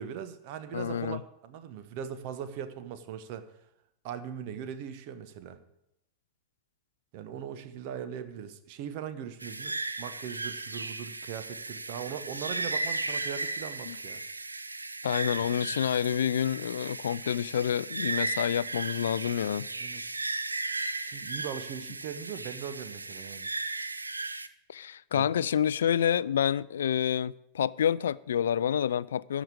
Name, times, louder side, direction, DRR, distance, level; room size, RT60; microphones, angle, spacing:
voice 1, 0.0-3.5 4.0-5.6 7.1-14.2 19.8-20.0 21.1-23.5 25.1-25.5, right 8 dB, 45° right, 1.0 m, -40 dB
voice 2, 0.7-1.2 13.9-14.0 15.0-19.7 24.7-29.4, left 9 dB, 65° left, 0.3 m, -28 dB
sound 1, 9.4-24.5, right 3 dB, 80° right, 0.5 m, -36 dB
13.5 x 5.1 x 8.4 m
figure-of-eight pair, 90°, 0 cm